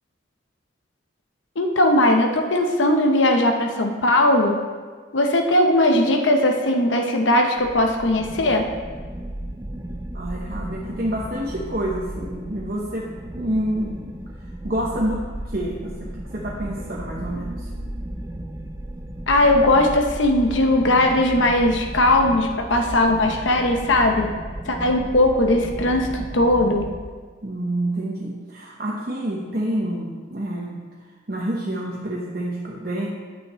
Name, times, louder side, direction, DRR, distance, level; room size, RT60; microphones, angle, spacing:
voice 1, 1.6-4.6 5.1-8.6 19.3-24.3 24.7-26.9, left 1 dB, 75° left, 3 dB, 0.8 m, -19 dB
sound 1, 7.6-27.0, right 1 dB, 15° right, 0.5 m, -34 dB
voice 2, 10.1-14.2 14.4-17.7 27.4-30.7 31.3-33.1, right 1 dB, 50° right, -4 dB, 0.9 m, -28 dB
10.0 x 9.0 x 3.1 m, 1.5 s
head